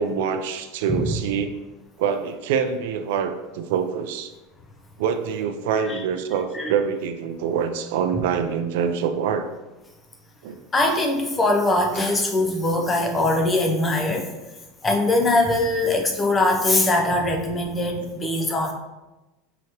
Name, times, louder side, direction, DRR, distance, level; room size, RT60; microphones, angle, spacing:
voice 1, 0.0-1.5 2.0-4.3 5.0-9.5 10.4-10.6, right 7 dB, 70° right, 8 dB, 0.3 m, -25 dB
voice 2, 10.7-14.3 14.8-18.7, left 2 dB, 15° left, 3 dB, 0.5 m, -21 dB
4.7 x 2.9 x 2.9 m, 1.1 s
supercardioid pair, 155°, 0 cm